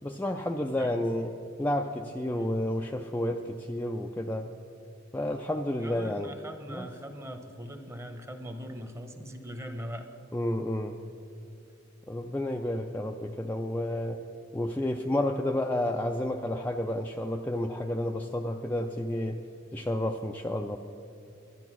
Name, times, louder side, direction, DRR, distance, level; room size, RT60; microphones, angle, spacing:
voice 1, 0.0-1.3 1.6-4.5 5.1-6.3 6.7-6.9 10.3-11.0 12.1-14.2 14.5-19.4 19.7-20.8, left 1 dB, 10° left, 3 dB, 0.4 m, -30 dB
voice 2, 0.8-1.1 2.3-2.6 5.8-10.0, equal, 15° right, 6 dB, 0.9 m, -41 dB
11.5 x 10.5 x 6.1 m, 2.8 s
head